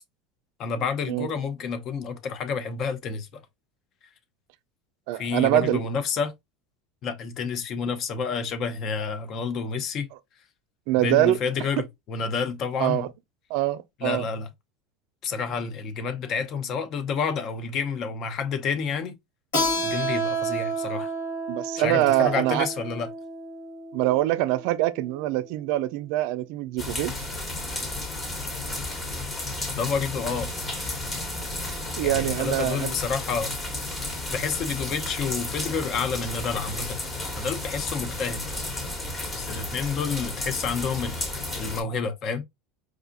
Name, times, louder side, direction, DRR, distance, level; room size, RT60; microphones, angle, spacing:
voice 1, 0.6-3.4 5.1-6.3 7.0-10.1 11.0-13.1 14.0-14.5 15.2-19.2 19.8-21.1 21.8-23.1 29.8-30.5 32.0-33.5 34.3-37.0 37.4-38.4 39.3-41.2 41.5-42.4, left 5 dB, 45° left, 0.8 m, -29 dB
voice 2, 5.1-5.8 10.9-11.4 12.8-13.1 13.5-14.2 21.5-22.7 23.9-27.2 32.0-32.9, right 16 dB, 70° right, 0.3 m, -24 dB
Keyboard (musical), 19.5-24.8, right 2 dB, 75° left, 2.1 m, -30 dB
sound 1, 26.8-41.8, left 2 dB, 25° left, 1.4 m, -32 dB
4.8 x 2.3 x 2.5 m
supercardioid pair, 110°, 0 cm